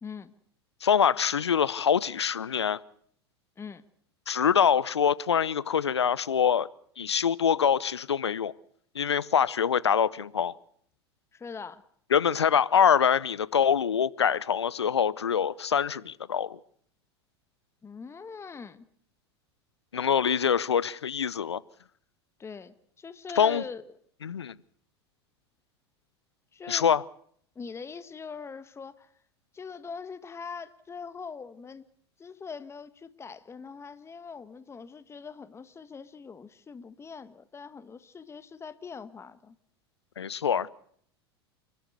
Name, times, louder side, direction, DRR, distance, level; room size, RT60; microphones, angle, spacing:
voice 1, 0.0-0.3 3.6-3.8 11.3-11.8 17.8-18.9 22.4-23.8 26.5-26.9 27.5-29.1 29.5-31.9 32.2-39.5, left 5 dB, 20° left, 1.5 m, -42 dB
voice 2, 0.8-2.8 4.3-6.7 7.0-8.5 8.9-10.5 12.1-16.6 19.9-21.6 23.4-23.6 24.2-24.6 26.7-27.0 40.2-40.7, left 7 dB, 85° left, 0.8 m, -24 dB
29.0 x 12.5 x 8.1 m
hypercardioid pair, 85°, 14 cm